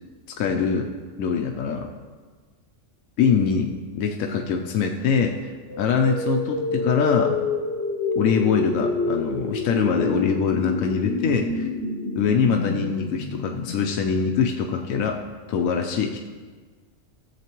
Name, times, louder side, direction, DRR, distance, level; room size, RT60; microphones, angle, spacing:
voice 1, 0.4-0.9 1.2-1.9 3.2-5.5 5.8-7.4 8.2-11.7 12.2-15.2 15.5-16.2, left 6 dB, 80° left, 2 dB, 1.0 m, -23 dB
sound 1, 5.7-14.6, left 3 dB, 50° left, 1.0 m, -28 dB
14.5 x 7.7 x 3.0 m, 1.5 s
omnidirectional pair, 1.4 m